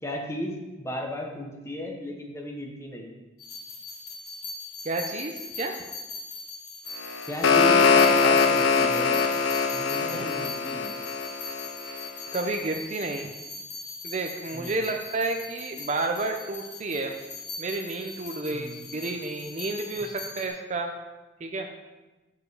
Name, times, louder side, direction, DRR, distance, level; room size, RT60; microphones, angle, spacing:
voice 1, 0.0-3.1 7.3-9.2 9.7-11.0 14.5-14.8 18.5-18.8 20.0-20.1, left 1 dB, 15° left, 1 dB, 1.0 m, -35 dB
sound 1, 3.4-20.5, left 3 dB, 55° left, 2.4 m, -40 dB
voice 2, 4.8-5.8 10.0-10.3 11.8-13.3 14.0-17.1 17.6-20.9 21.4-21.7, right 2 dB, 35° right, 4 dB, 0.5 m, -31 dB
sound 2, 7.0-12.1, left 5 dB, 85° left, 0.5 m, -22 dB
6.7 x 4.9 x 4.8 m, 1.1 s
head